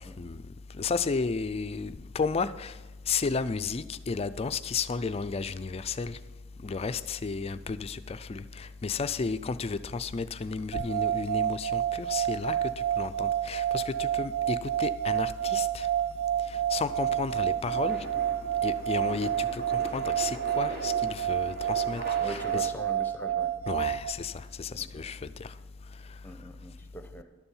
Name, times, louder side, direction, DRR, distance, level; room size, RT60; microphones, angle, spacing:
voice 1, 0.8-2.7 3.1-6.2 6.6-12.6 13.0-15.9 16.7-18.0 18.6-19.6 19.9-22.7 23.7-24.3 24.6-25.5, left 4 dB, 30° left, 0.4 m, -33 dB
sound 1, 10.7-24.1, right 11 dB, 70° right, 0.4 m, -29 dB
sound 2, 15.4-23.0, equal, 50° right, 1.9 m, -43 dB
voice 2, 22.2-23.5 24.8-25.0 26.2-27.2, equal, 10° left, 0.9 m, -42 dB
12.0 x 7.1 x 5.5 m
head